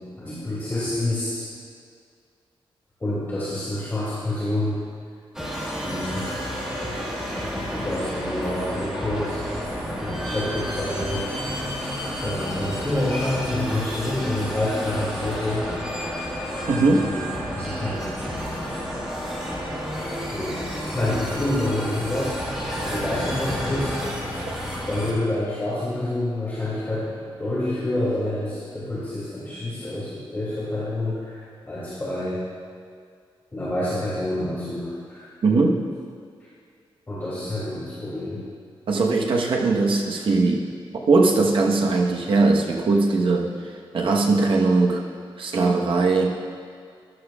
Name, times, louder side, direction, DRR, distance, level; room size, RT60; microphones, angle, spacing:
voice 1, 0.2-1.5 3.0-4.8 5.8-6.3 7.7-9.5 10.0-11.7 12.2-15.7 17.1-18.1 20.3-20.6 20.9-24.5 24.9-32.4 33.5-35.3 37.1-38.4, left 1 dB, 20° left, -11 dB, 2.6 m, -28 dB
sound 1, 5.3-25.1, equal, 5° right, 1.8 m, -30 dB
voice 2, 16.7-17.1 24.5-24.6 35.4-35.8 38.9-40.6 41.1-43.5 43.9-45.0 45.4-46.4, right 3 dB, 70° right, 0 dB, 1.1 m, -20 dB
13.5 x 11.5 x 2.4 m, 2.2 s
wide cardioid pair, 150°, 9 cm